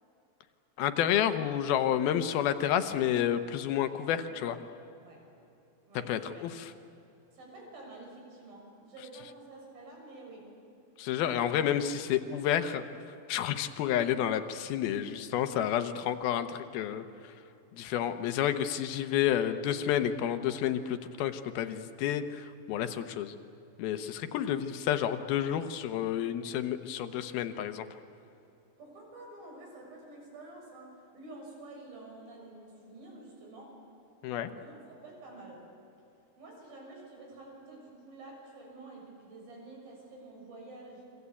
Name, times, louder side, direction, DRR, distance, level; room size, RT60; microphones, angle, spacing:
voice 1, 0.8-4.6 6.1-6.7 11.0-12.8 13.3-17.3 17.7-23.4 23.8-27.9 34.2-34.5, left 10 dB, 80° left, 9 dB, 2.9 m, -30 dB
voice 2, 5.9-6.4 7.3-10.5 28.8-33.8 34.3-35.7 36.4-41.0, right 2 dB, 70° right, 0 dB, 8.4 m, -49 dB
28.5 x 24.5 x 8.4 m, 2.8 s
omnidirectional pair, 4.4 m